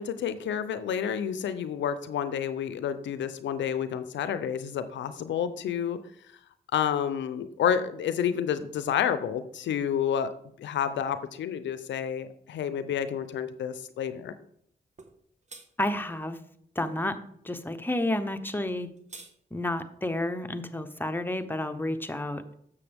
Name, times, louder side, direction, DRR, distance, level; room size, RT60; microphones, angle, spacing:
voice 1, 0.0-6.0 6.7-10.3 10.6-14.3, left 8 dB, 90° left, 12 dB, 0.5 m, -29 dB
sound 1, 15.0-15.1 15.5-15.7 18.7-19.3, right 3 dB, 40° right, 1.2 m, -46 dB
voice 2, 15.8-16.4 16.8-17.2 17.4-18.9 19.5-22.4, left 1 dB, 10° left, 8 dB, 0.9 m, -30 dB
6.9 x 6.9 x 3.4 m, 0.67 s
supercardioid pair, 45°, 19 cm